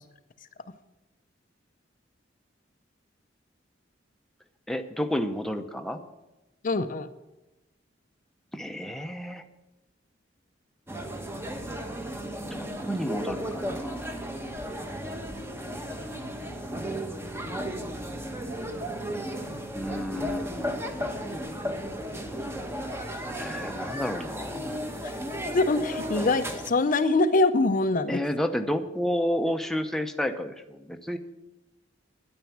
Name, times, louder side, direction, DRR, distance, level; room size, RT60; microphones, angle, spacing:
voice 1, 4.7-6.0 8.5-9.4 12.5-14.0 19.7-20.8 23.3-24.9 28.1-31.2, equal, ahead, 5 dB, 0.7 m, -31 dB
voice 2, 6.6-7.1 25.0-25.2 25.5-28.2, left 2 dB, 45° left, 10 dB, 0.6 m, -24 dB
sound 1, 10.9-26.7, equal, 15° right, 1.1 m, -34 dB
10.5 x 9.3 x 7.1 m, 1.0 s
head